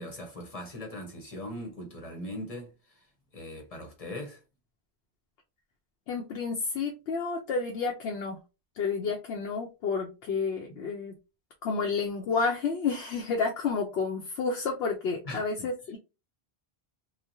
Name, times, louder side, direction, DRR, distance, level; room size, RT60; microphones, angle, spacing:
voice 1, 0.0-3.0 3.3-4.4 15.2-15.7, left 1 dB, 40° left, 0.9 m, -40 dB
voice 2, 6.1-8.4 8.8-11.1 11.6-16.0, left 4 dB, 85° left, 0.8 m, -30 dB
2.9 x 2.1 x 2.6 m
omnidirectional pair, 1.0 m